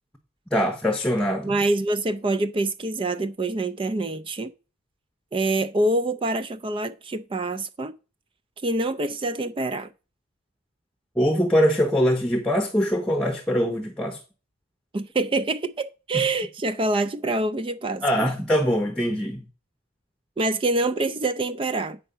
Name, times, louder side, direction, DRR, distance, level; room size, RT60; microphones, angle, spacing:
voice 1, 0.5-1.6 11.2-14.2 18.0-19.4, equal, 5° left, 0.8 m, -23 dB
voice 2, 1.4-4.5 5.3-7.9 8.6-9.9 14.9-18.3 20.4-22.0, right 2 dB, 25° right, 0.4 m, -26 dB
8.8 x 4.5 x 6.6 m
head